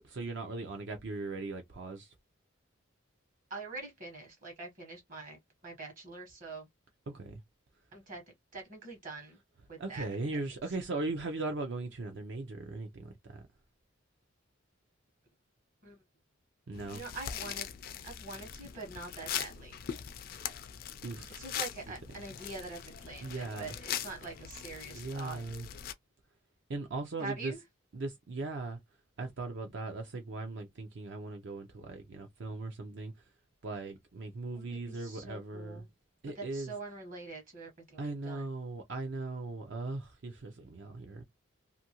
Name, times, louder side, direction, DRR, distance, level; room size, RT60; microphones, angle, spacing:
voice 1, 0.0-2.1 7.1-7.4 9.8-13.4 16.7-17.0 21.0-21.5 23.2-23.7 24.9-25.7 26.7-27.5 27.9-28.8 29.2-33.1 33.6-35.8 36.2-36.7 38.0-41.2, right 3 dB, 55° right, 0.5 m, -39 dB
voice 2, 3.5-6.7 7.9-8.2 8.5-9.4 9.7-10.1 15.8-16.0 16.9-17.7 18.0-19.8 21.4-25.4 27.2-27.6 34.5-35.9 36.3-38.5, right 3 dB, 40° right, 1.0 m, -44 dB
sound 1, 16.7-25.9, left 9 dB, 45° left, 0.3 m, -41 dB
2.6 x 2.5 x 2.8 m
head